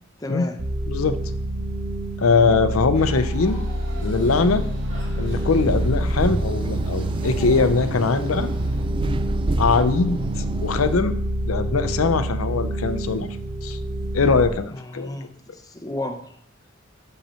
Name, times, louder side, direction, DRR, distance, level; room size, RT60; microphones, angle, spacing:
voice 1, 0.2-0.6 14.7-16.4, left 2 dB, 15° left, 6 dB, 0.6 m, -33 dB
sound 1, 0.6-14.5, right 1 dB, 90° right, 1.0 m, -27 dB
voice 2, 0.9-1.2 2.2-3.6 4.0-4.6 5.2-8.5 9.6-11.1 11.5-13.3 13.6-13.8 14.1-15.2, left 4 dB, 90° left, 10 dB, 0.6 m, -21 dB
sound 2, 2.9-8.8, right 1 dB, 65° right, 2.2 m, -40 dB
sound 3, 5.3-11.0, right 2 dB, 25° right, 0.3 m, -29 dB
7.3 x 5.5 x 4.3 m, 0.64 s
head